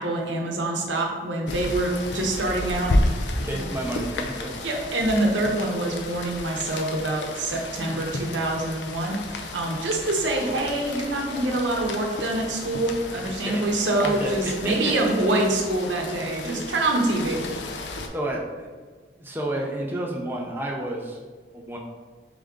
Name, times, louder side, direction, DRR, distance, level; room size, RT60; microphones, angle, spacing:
voice 1, 0.0-2.9 3.5-3.6 4.6-17.4, right 2 dB, 85° right, 0 dB, 0.8 m, -25 dB
Rain, 1.5-18.1, left 2 dB, 70° left, 0.5 m, -32 dB
voice 2, 3.4-4.5 13.5-14.7 16.4-16.6 18.1-18.7 19.2-21.2 21.5-21.8, right 1 dB, 10° right, -2 dB, 0.5 m, -30 dB
3.7 x 3.6 x 3.6 m, 1.5 s
head